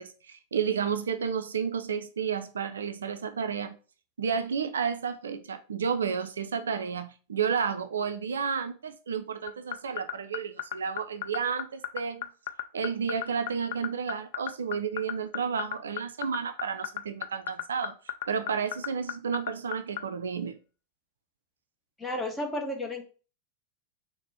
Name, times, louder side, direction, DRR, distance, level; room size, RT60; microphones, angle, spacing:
voice 1, 0.0-3.8 4.2-12.3 12.7-18.0 18.3-20.6, right 6 dB, 70° right, 10 dB, 0.4 m, -31 dB
sound 1, 9.5-20.0, left 13 dB, 55° left, 0.3 m, -32 dB
voice 2, 22.0-23.0, left 1 dB, 10° left, 2 dB, 0.9 m, -32 dB
4.1 x 2.1 x 4.1 m, 0.36 s
figure-of-eight pair, 90°, 0 cm